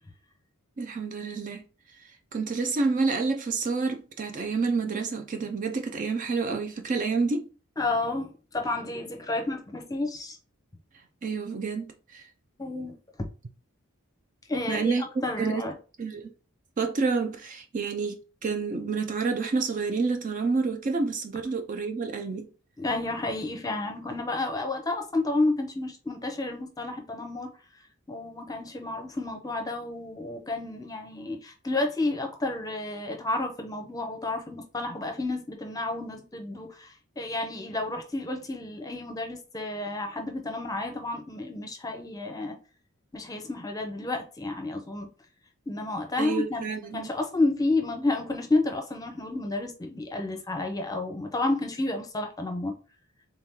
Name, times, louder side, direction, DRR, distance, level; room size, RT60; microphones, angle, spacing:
voice 1, 0.8-1.6 2.0-7.5 11.2-12.2 14.7-15.0 15.4-15.7 16.0-16.3 16.8-22.5 46.2-47.1, right 4 dB, 35° right, 0.4 m, -29 dB
voice 2, 7.8-10.4 12.6-13.3 14.5-15.7 22.8-27.5 28.1-42.6 43.1-45.1 45.7-46.6 46.9-52.7, left 2 dB, 15° left, 0.6 m, -31 dB
3.6 x 2.9 x 3.6 m
head